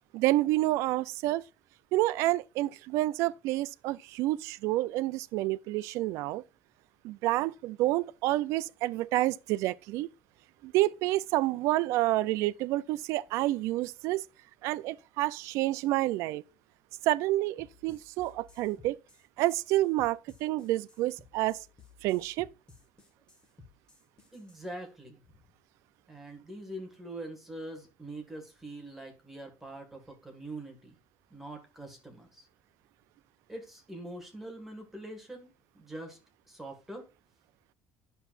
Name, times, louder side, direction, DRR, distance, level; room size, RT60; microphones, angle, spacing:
voice 1, 0.1-1.4 1.9-6.4 7.0-10.1 10.6-14.2 14.6-16.4 17.0-19.0 19.4-21.6 22.0-22.5, right 17 dB, 80° right, 0.4 m, -29 dB
sound 1, 17.6-24.7, left 3 dB, 15° left, 1.6 m, -57 dB
voice 2, 24.3-25.2 26.1-31.0 31.3-32.5 33.5-36.2 36.5-37.1, right 1 dB, 5° right, 1.9 m, -44 dB
10.0 x 7.0 x 2.5 m
cardioid pair, 175°, 5 cm